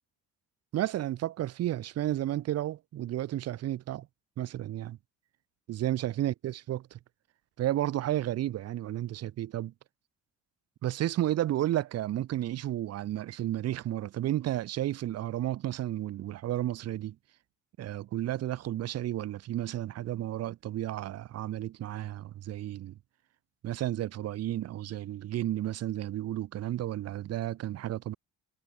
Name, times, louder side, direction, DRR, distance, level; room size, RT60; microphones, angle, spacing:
voice 1, 0.7-4.1 4.4-5.0 5.7-6.8 7.6-9.7 10.8-17.2 17.8-23.0 23.6-28.2, right 13 dB, 50° right, 0.7 m, -32 dB
cardioid pair, 105°, 33 cm